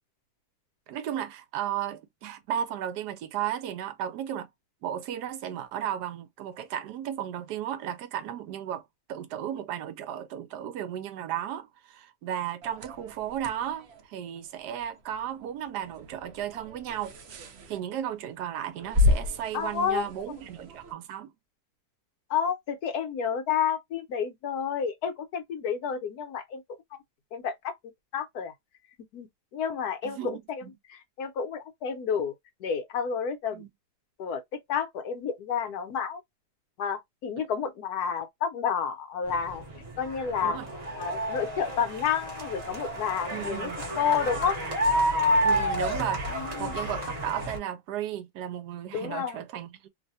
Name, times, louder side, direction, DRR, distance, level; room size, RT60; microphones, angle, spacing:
voice 1, 0.9-4.5 4.8-8.8 9.1-17.1 17.7-21.3 30.0-30.7 33.5-33.7 37.4-37.5 40.4-40.7 43.3-43.8 45.4-49.9, right 10 dB, 80° right, 1.2 m, -34 dB
sound 1, 12.6-20.9, left 3 dB, 60° right, 0.7 m, -32 dB
voice 2, 19.5-20.0 22.3-26.6 27.3-27.7 28.1-28.5 29.1-32.3 32.6-33.6 34.2-36.2 36.8-39.6 40.0-40.6 41.0-43.7 43.9-44.6 46.3-46.8 48.9-49.4, left 7 dB, 70° left, 1.3 m, -30 dB
sound 2, 39.3-47.6, equal, 30° right, 0.8 m, -30 dB
3.2 x 2.2 x 2.6 m
omnidirectional pair, 1.8 m